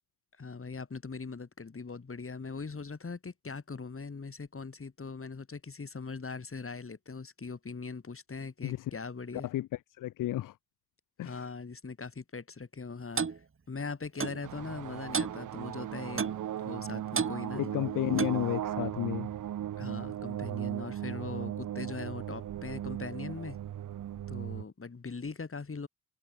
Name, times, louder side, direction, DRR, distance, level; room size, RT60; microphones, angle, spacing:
voice 1, 0.4-9.5 11.2-13.2 13.7-16.2 16.6-17.6 19.8-23.6 24.3-25.9, left 4 dB, 40° left, 5.4 m, -41 dB
voice 2, 10.0-10.5 11.2-11.4 17.6-19.3, left 14 dB, 60° left, 0.6 m, -32 dB
Clock, 13.2-13.4 14.2-14.4 15.1-15.4 16.2-16.4 17.1-17.4 18.2-18.4, right 5 dB, 35° right, 2.0 m, -31 dB
sound 1, 14.4-24.6, right 11 dB, 60° right, 0.8 m, -37 dB
supercardioid pair, 55°, 35 cm